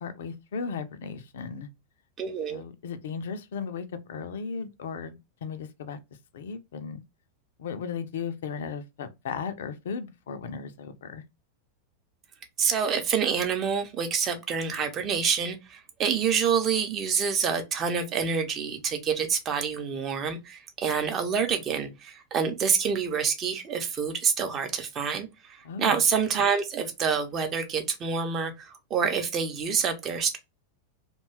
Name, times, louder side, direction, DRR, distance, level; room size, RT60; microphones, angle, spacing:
voice 1, 0.0-1.7 2.5-6.0 6.3-7.0 7.6-11.2 25.6-26.0, left 6 dB, 60° left, 0.4 m, -36 dB
voice 2, 2.2-2.6 12.6-30.4, right 6 dB, 30° right, 0.6 m, -27 dB
2.6 x 2.2 x 3.1 m
figure-of-eight pair, 90°, 0 cm